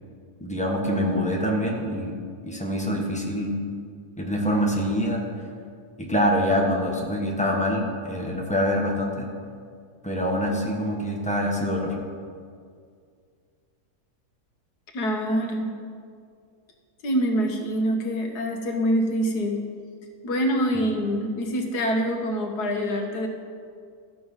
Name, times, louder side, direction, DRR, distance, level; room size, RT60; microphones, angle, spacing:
voice 1, 0.4-2.1 2.4-3.5 4.2-5.2 6.0-9.3 10.0-11.9, equal, 5° left, -1 dB, 1.2 m, -25 dB
voice 2, 14.9-15.7 17.0-19.6 20.2-23.3, equal, 90° left, 3 dB, 1.8 m, -25 dB
14.0 x 6.8 x 5.6 m, 2.2 s
omnidirectional pair, 1.6 m